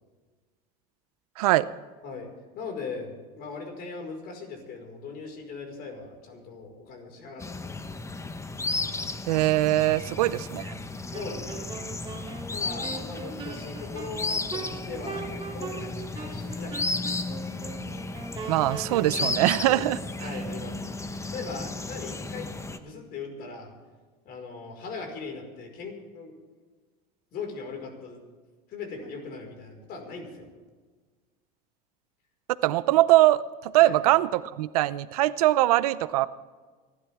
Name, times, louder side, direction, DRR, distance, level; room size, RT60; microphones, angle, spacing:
voice 1, 1.4-1.7 9.3-10.7 18.5-20.0 32.6-36.3, right 16 dB, 90° right, 16 dB, 0.6 m, -22 dB
voice 2, 2.5-8.0 9.9-10.1 11.1-11.7 12.5-16.8 19.5-19.8 20.2-20.8 21.3-23.7 24.2-26.4 27.3-28.2 28.7-30.5 33.8-34.0, left 4 dB, 55° left, 4 dB, 5.0 m, -39 dB
sound 1, 7.4-22.8, left 3 dB, 15° left, 1.1 m, -34 dB
Wind instrument woodwind instrument, 11.1-19.4, right 4 dB, 25° right, 3.1 m, -40 dB
25.5 x 12.5 x 3.6 m, 1.4 s
supercardioid pair, 100°, 19 cm